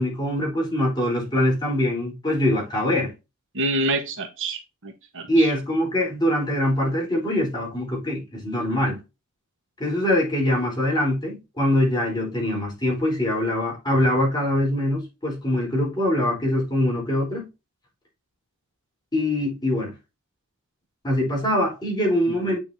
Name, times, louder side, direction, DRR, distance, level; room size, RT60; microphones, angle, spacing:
voice 1, 0.0-3.1 5.3-9.0 9.8-17.5 19.1-19.9 21.0-22.6, left 1 dB, 20° left, 4.0 m, -23 dB
voice 2, 3.5-5.5 22.4-22.6, right 2 dB, 60° right, 1.3 m, -27 dB
8.7 x 5.4 x 2.8 m
head